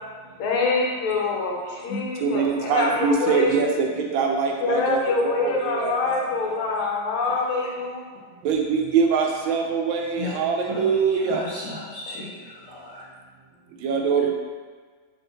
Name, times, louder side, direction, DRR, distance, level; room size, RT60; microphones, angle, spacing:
voice 1, 0.4-3.5 4.6-8.0, left 3 dB, 85° left, -1 dB, 1.5 m, -25 dB
voice 2, 2.2-3.9 4.1-5.5 5.8-5.9 8.4-11.4 13.8-14.3, right 5 dB, 75° right, 1 dB, 1.3 m, -23 dB
voice 3, 11.3-13.0, left 3 dB, 65° left, -8 dB, 1.3 m, -35 dB
3.1 x 2.9 x 3.8 m, 1.5 s
omnidirectional pair, 2.3 m